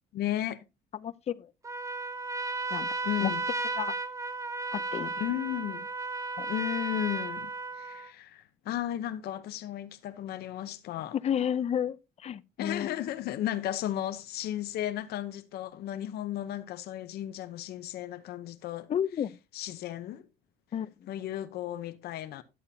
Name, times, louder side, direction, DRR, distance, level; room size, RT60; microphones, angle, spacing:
voice 1, 0.1-0.6 3.0-3.4 5.2-5.9 6.5-11.2 12.6-18.9 19.5-20.3 21.1-22.4, left 12 dB, 70° left, 0.8 m, -34 dB
voice 2, 0.9-1.5 2.7-2.9 3.2-3.3 3.8-3.9 4.7-5.1 6.4-6.5 11.1-12.0 12.2-12.9 18.9-19.3 20.7-20.9, left 9 dB, 40° left, 0.6 m, -31 dB
Trumpet, 1.6-8.1, right 3 dB, 20° right, 0.8 m, -34 dB
11.0 x 8.4 x 2.8 m
cardioid pair, 110°, 17 cm